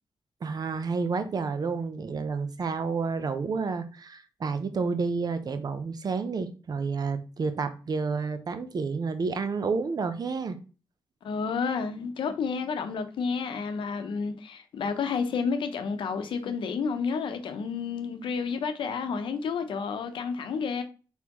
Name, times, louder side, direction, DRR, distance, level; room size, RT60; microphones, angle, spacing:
voice 1, 0.4-10.6, right 4 dB, 50° right, 0.7 m, -30 dB
voice 2, 11.2-20.8, left 5 dB, 80° left, 0.7 m, -30 dB
4.3 x 3.5 x 3.0 m
cardioid pair, 70°, 8 cm